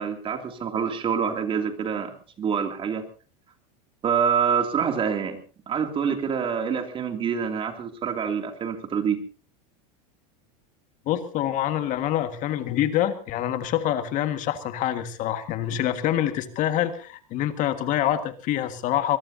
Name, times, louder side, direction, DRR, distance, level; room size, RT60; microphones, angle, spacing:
voice 1, 0.0-3.0 4.0-5.4 5.7-9.2, right 7 dB, 30° right, 5 dB, 2.8 m, -26 dB
voice 2, 11.1-19.2, left 11 dB, 45° left, 9 dB, 1.8 m, -26 dB
22.5 x 21.5 x 2.8 m, 0.37 s
supercardioid pair, 125°, 18 cm